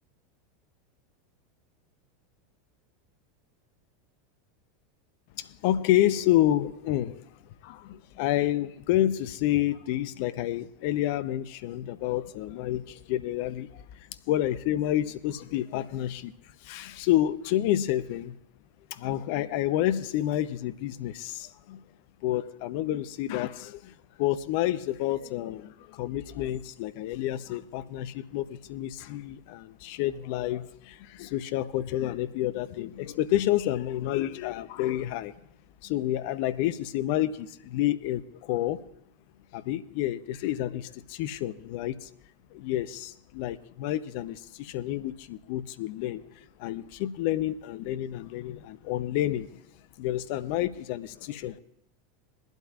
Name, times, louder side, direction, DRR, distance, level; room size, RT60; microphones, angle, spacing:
voice 1, 5.4-7.2 7.6-13.7 14.3-16.3 16.6-18.4 18.9-21.8 22.2-23.9 24.2-35.3 35.8-38.8 39.5-42.1 42.5-46.2 46.6-49.5 50.0-51.6, left 13 dB, 60° left, 14 dB, 0.6 m, -29 dB
21.5 x 12.0 x 2.4 m, 0.76 s
hypercardioid pair, 85°, 0 cm